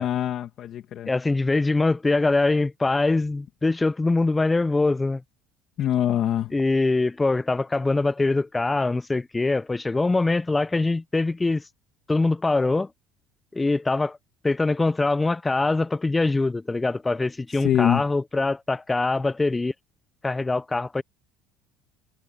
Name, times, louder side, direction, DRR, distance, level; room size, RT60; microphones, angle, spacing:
voice 1, 0.0-1.1 5.8-6.5 17.5-18.0, left 11 dB, 50° left, 1.9 m, -24 dB
voice 2, 1.1-5.2 6.5-11.6 12.1-12.9 13.5-14.2 14.4-19.7 20.2-21.0, left 3 dB, 10° left, 0.4 m, -23 dB
cardioid pair, 130°, 0 cm